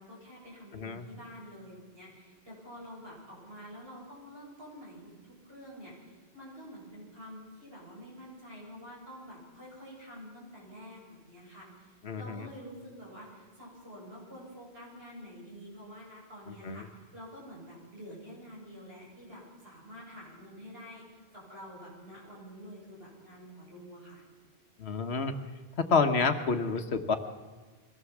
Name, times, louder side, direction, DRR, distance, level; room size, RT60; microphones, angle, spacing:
voice 1, 0.0-16.9 17.1-24.2, equal, 70° right, -4 dB, 7.8 m, -48 dB
voice 2, 0.7-1.1 12.0-12.5 16.6-16.8 24.8-25.3 25.9-27.2, left 4 dB, 80° left, 8 dB, 1.5 m, -28 dB
22.5 x 16.5 x 7.3 m, 1.4 s
omnidirectional pair, 1.1 m